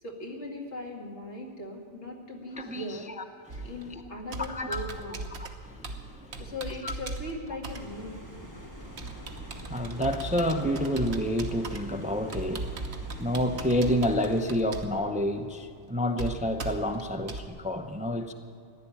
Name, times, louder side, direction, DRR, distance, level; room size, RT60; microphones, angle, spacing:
voice 1, 0.0-3.1 3.6-5.2 6.4-8.4, left 1 dB, 80° left, -1 dB, 2.6 m, -39 dB
voice 2, 2.5-4.0 4.5-4.8 5.4-6.5 6.8-6.9 8.6-18.3, equal, 10° right, 6 dB, 0.6 m, -30 dB
Computer keyboard, 3.5-17.5, right 3 dB, 70° right, 1.4 m, -39 dB
sound 1, 7.6-14.4, equal, 15° left, 1.6 m, -45 dB
15.0 x 11.0 x 8.6 m, 2.6 s
omnidirectional pair, 1.2 m